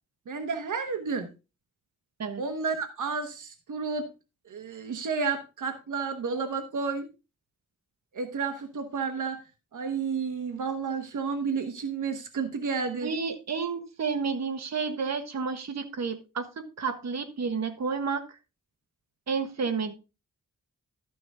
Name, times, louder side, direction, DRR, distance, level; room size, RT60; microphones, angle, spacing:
voice 1, 0.3-1.3 2.4-4.1 4.4-7.1 8.1-9.4 9.7-13.1, right 5 dB, 80° right, 6 dB, 1.3 m, -31 dB
voice 2, 13.0-18.2 19.3-19.9, right 5 dB, 60° right, 7 dB, 1.5 m, -31 dB
13.0 x 6.2 x 3.5 m, 0.29 s
wide cardioid pair, 95°, 30 cm